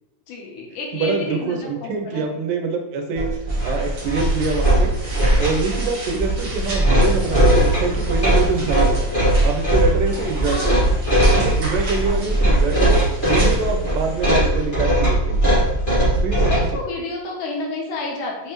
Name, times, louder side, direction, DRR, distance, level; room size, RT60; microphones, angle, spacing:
voice 1, 0.3-2.3 10.4-10.9 16.4-18.5, left 2 dB, 75° left, -1 dB, 2.2 m, -30 dB
voice 2, 0.9-3.3 3.6-4.9 5.4-9.1 9.4-10.8 11.2-13.0 13.2-15.5 16.2-16.5, right 4 dB, 80° right, 4 dB, 2.2 m, -25 dB
sound 1, 3.1-16.7, right 1 dB, 45° left, 0.6 m, -19 dB
sound 2, 3.5-14.5, right 1 dB, 50° right, 1.6 m, -35 dB
5.5 x 3.3 x 2.9 m, 0.93 s
omnidirectional pair, 3.9 m